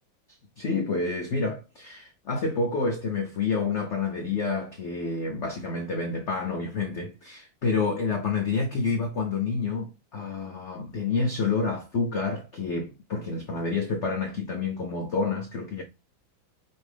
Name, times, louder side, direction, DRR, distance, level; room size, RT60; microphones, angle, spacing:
voice 1, 0.6-15.8, left 4 dB, 85° left, 0.6 m, -28 dB
5.4 x 2.6 x 3.3 m
omnidirectional pair, 2.2 m